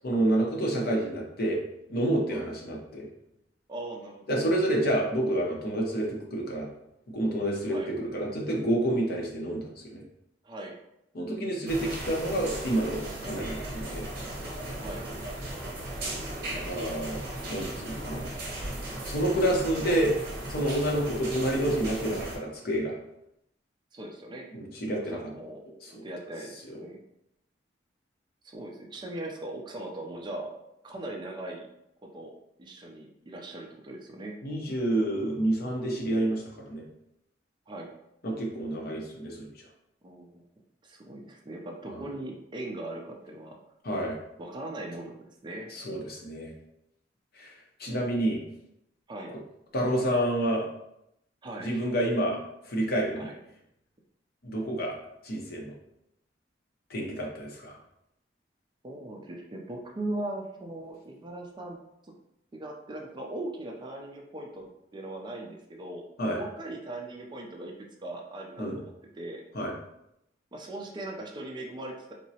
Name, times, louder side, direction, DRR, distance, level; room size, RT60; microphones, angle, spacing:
voice 1, 0.0-1.6 1.9-3.1 4.3-6.7 7.1-10.0 11.1-14.1 16.5-17.2 17.5-18.2 19.0-20.1 20.5-22.9 24.5-25.2 25.8-26.0 26.7-26.8 34.4-36.8 38.2-39.5 41.9-42.0 43.8-44.2 45.7-46.5 47.3-47.5 47.8-48.4 49.7-50.6 51.6-52.4 52.7-53.3 54.4-54.9 55.2-55.7 56.9-57.8 66.2-66.4 68.6-68.8 69.5-69.7, right 1 dB, 55° left, -1 dB, 0.7 m, -29 dB
voice 2, 3.7-4.2 7.7-7.9 10.4-10.7 14.8-15.0 23.9-24.5 25.0-25.6 25.9-27.0 28.4-30.5 30.8-31.7 32.1-32.3 32.6-34.3 37.7-37.9 40.0-40.5 40.8-43.5 44.4-45.1 45.4-45.7 49.1-49.3 51.4-51.8 53.2-53.3 58.8-61.8 62.0-62.1 62.5-66.0 66.3-67.7 68.0-69.4 70.5-72.1, right 1 dB, 25° right, 1 dB, 0.4 m, -39 dB
sound 1, 11.7-22.4, right 1 dB, 60° right, 0.9 m, -36 dB
3.6 x 2.0 x 2.7 m, 0.81 s
head